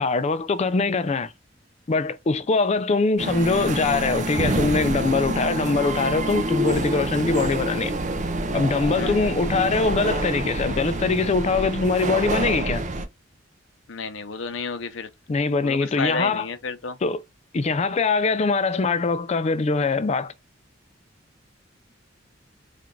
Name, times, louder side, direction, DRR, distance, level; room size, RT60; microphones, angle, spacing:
voice 1, 0.0-1.3 1.9-7.9 8.5-12.8 15.3-16.5 17.0-17.2 17.5-20.3, left 4 dB, 35° left, 0.4 m, -23 dB
sound 1, 3.2-13.1, right 1 dB, 40° right, 0.6 m, -27 dB
voice 2, 9.0-9.3 13.9-15.1 15.6-17.0, left 3 dB, 70° left, 0.8 m, -31 dB
4.4 x 2.5 x 3.7 m
head